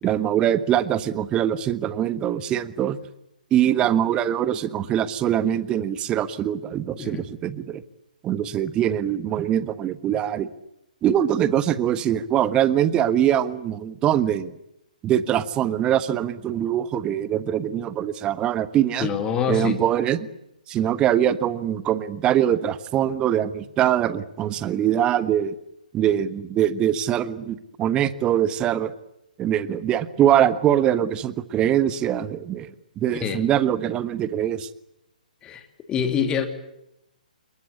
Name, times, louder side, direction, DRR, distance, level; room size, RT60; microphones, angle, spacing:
voice 1, 0.0-3.0 3.5-7.8 8.2-10.5 11.0-14.5 15.0-19.1 19.5-20.3 20.7-25.5 25.9-28.9 29.4-32.7 33.0-34.7, right 10 dB, 20° right, 14 dB, 1.4 m, -23 dB
voice 2, 19.0-19.7 33.2-33.4 35.4-35.6 35.9-36.5, left 7 dB, 15° left, 7 dB, 2.9 m, -25 dB
26.5 x 22.0 x 8.5 m, 0.82 s
figure-of-eight pair, 130°, 5 cm